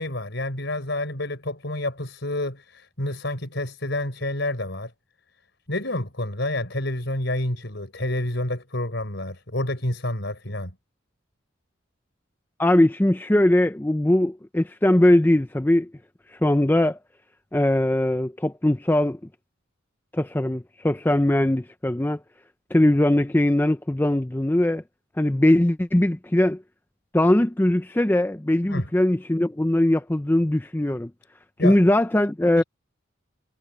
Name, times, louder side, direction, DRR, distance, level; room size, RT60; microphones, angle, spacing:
voice 1, 0.0-4.9 5.7-10.7 28.7-28.9 31.6-31.8 32.6-32.7, left 1 dB, 60° left, 5.1 m, -29 dB
voice 2, 12.6-15.9 16.3-17.0 17.5-19.2 20.1-22.2 22.7-24.8 25.2-26.6 27.1-31.1 31.6-32.6, left 1 dB, 10° left, 0.5 m, -20 dB
head